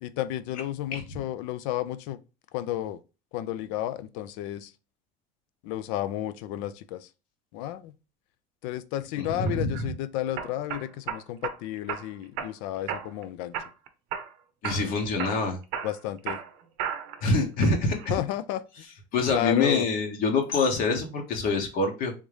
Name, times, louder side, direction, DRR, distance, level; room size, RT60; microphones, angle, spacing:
voice 1, 0.0-2.2 2.5-3.0 3.3-4.7 5.6-7.1 7.5-7.9 8.6-13.6 15.8-16.4 18.1-18.6 19.3-19.9, left 13 dB, 80° left, 0.4 m, -32 dB
voice 2, 9.2-9.8 14.6-15.6 17.2-18.1 19.1-22.1, left 3 dB, 55° left, 0.9 m, -25 dB
sound 1, 9.5-9.8 10.4-11.6 11.9-12.5 12.9-13.2 13.5-14.3 14.6-14.9 15.2-17.2 17.6-18.1, right 8 dB, 75° right, 0.6 m, -34 dB
3.6 x 2.7 x 3.2 m
supercardioid pair, 120°, 17 cm